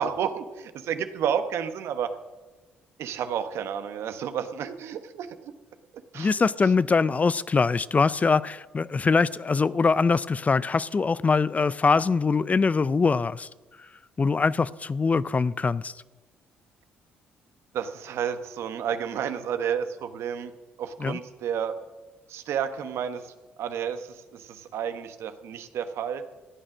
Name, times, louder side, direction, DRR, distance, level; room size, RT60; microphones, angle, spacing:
voice 1, 0.0-2.1 3.0-5.3 6.1-6.3 17.7-20.5 20.8-21.7 22.3-23.3 23.6-26.2, right 8 dB, 70° right, 10 dB, 1.1 m, -31 dB
voice 2, 6.1-13.5 14.2-15.9 21.0-21.2, left 4 dB, 30° left, 19 dB, 0.5 m, -23 dB
14.5 x 8.9 x 6.1 m, 1.2 s
hypercardioid pair, 55°, 5 cm